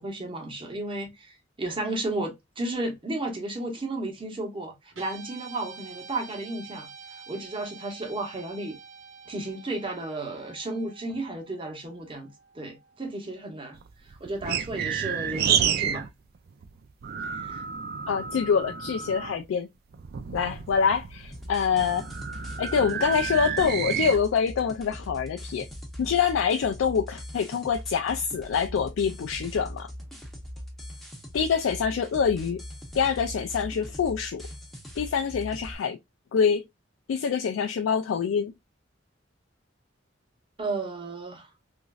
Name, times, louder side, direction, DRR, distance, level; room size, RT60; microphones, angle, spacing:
voice 1, 0.0-6.9 7.3-8.8 9.3-13.8 14.1-16.1 17.3-17.6 40.6-41.5, right 2 dB, 25° right, 0.9 m, -33 dB
Guitar, 4.9-13.4, right 5 dB, 80° right, 1.0 m, -48 dB
sound 1, 13.7-16.1 16.3-19.4 19.9-24.2, right 8 dB, 50° right, 0.4 m, -30 dB
voice 2, 18.1-19.7 20.3-22.1 22.6-25.7 26.0-29.9 31.3-32.6 32.9-34.4 35.0-36.0 36.3-36.6 37.1-38.5, left 6 dB, 80° left, 0.3 m, -25 dB
sound 2, 21.3-35.7, equal, ahead, 0.7 m, -41 dB
3.0 x 2.5 x 2.3 m
head